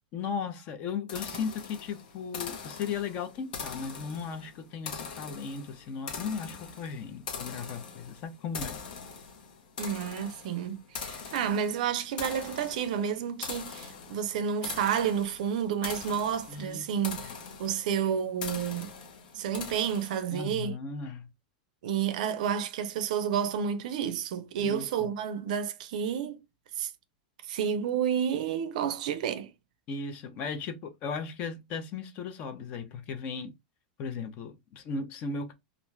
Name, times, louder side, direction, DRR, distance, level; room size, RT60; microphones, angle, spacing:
voice 1, 0.1-8.8 16.5-16.8 20.3-21.3 24.6-25.1 29.9-33.5 34.0-35.5, left 5 dB, 30° left, 0.5 m, -36 dB
sound 1, 1.1-20.5, left 5 dB, 70° left, 0.8 m, -42 dB
voice 2, 9.8-17.3 17.6-18.9 19.3-20.8 21.8-26.4 26.8-26.9 27.5-29.5, right 8 dB, 55° right, 0.4 m, -30 dB
2.4 x 2.3 x 3.1 m
supercardioid pair, 175°, 5 cm